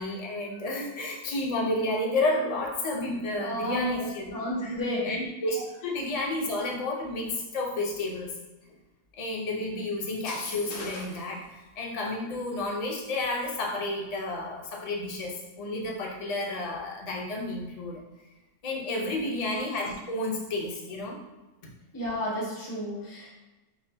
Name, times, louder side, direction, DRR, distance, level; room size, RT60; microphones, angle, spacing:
voice 1, 0.0-4.4 4.6-8.3 9.2-18.0 18.6-21.2, left 2 dB, 80° left, -2 dB, 0.3 m, -31 dB
voice 2, 3.4-4.0 4.3-5.1 19.0-19.2 21.9-23.4, equal, 15° left, -6 dB, 1.0 m, -32 dB
sound 1, 10.1-11.3, left 3 dB, 60° left, 0.8 m, -39 dB
5.9 x 2.7 x 2.2 m, 1.1 s
omnidirectional pair, 1.6 m